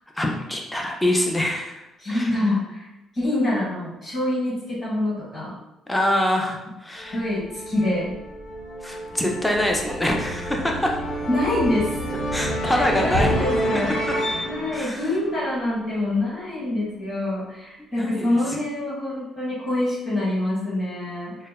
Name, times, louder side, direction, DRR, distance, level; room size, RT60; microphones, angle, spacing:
voice 1, 0.2-1.8 2.1-2.4 5.9-7.2 8.8-11.0 12.3-13.3 14.7-15.0 17.9-18.4, left 1 dB, 5° left, 0 dB, 0.3 m, -24 dB
voice 2, 2.0-2.9 3.1-5.5 7.1-8.1 11.3-11.9 12.7-14.0 14.4-21.4, left 1 dB, 35° left, -7 dB, 1.0 m, -25 dB
sound 1, 7.0-16.0, equal, 85° left, 0.9 m, -29 dB
2.0 x 2.0 x 3.4 m, 0.93 s
cardioid pair, 150°, 0 cm